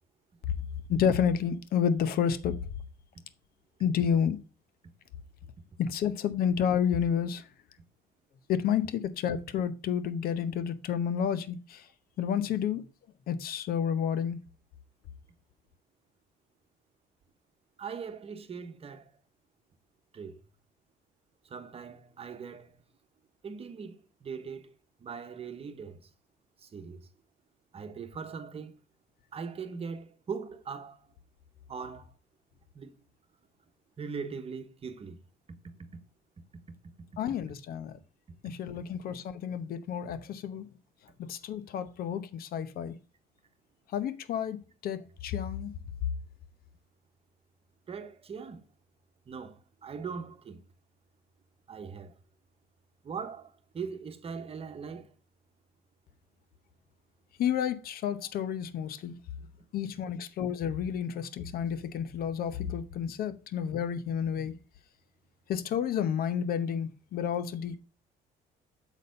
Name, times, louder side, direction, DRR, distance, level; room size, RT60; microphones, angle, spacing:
voice 1, 0.9-2.6 3.8-4.4 5.8-7.5 8.5-11.9 12.2-12.8 13.3-14.4 37.2-38.0 38.4-40.7 41.2-43.0 43.9-45.7 57.4-59.2 59.7-64.6 65.5-67.8, left 8 dB, 65° left, 0.8 m, -30 dB
voice 2, 17.8-19.1 20.1-20.4 21.4-22.8 23.4-24.7 25.0-26.1 26.6-27.1 27.7-28.7 29.3-31.1 31.7-32.1 32.7-32.9 34.0-35.2 47.9-48.7 49.3-50.6 51.7-52.2 53.0-55.1, right 6 dB, 35° right, 1.1 m, -40 dB
7.2 x 4.1 x 5.2 m
cardioid pair, 110°, 17 cm